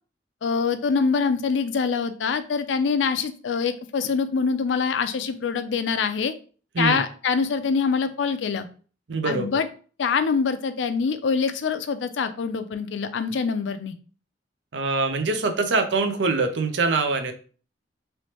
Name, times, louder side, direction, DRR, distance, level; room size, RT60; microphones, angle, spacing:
voice 1, 0.4-6.3 6.8-8.7 9.2-9.7 10.0-14.0, left 5 dB, 80° left, 10 dB, 0.4 m, -24 dB
voice 2, 9.1-9.6 14.7-17.3, right 3 dB, 75° right, 7 dB, 0.6 m, -24 dB
3.2 x 3.0 x 2.9 m, 0.40 s
head